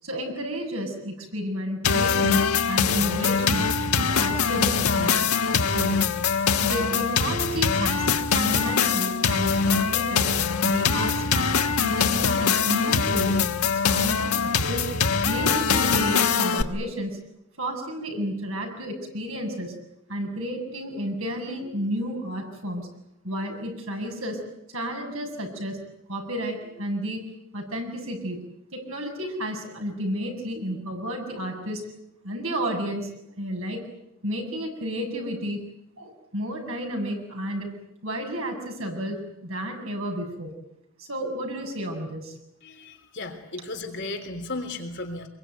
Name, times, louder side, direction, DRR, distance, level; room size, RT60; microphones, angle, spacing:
voice 1, 0.0-3.7 4.0-5.2 5.7-6.0 6.6-10.3 10.6-14.9 15.2-17.2 17.6-19.7 20.1-22.9 23.2-24.4 24.7-25.8 26.1-27.3 27.5-28.4 28.7-31.8 32.2-33.1 33.4-33.8 34.2-35.6 36.0-37.7 38.0-40.5 41.0-42.4, equal, 70° right, 2 dB, 7.3 m, -31 dB
sound 1, 1.8-16.6, left 5 dB, 85° left, 1.4 m, -23 dB
voice 2, 42.6-45.3, left 2 dB, 50° left, 5 dB, 3.4 m, -35 dB
25.0 x 23.0 x 9.4 m, 0.82 s
head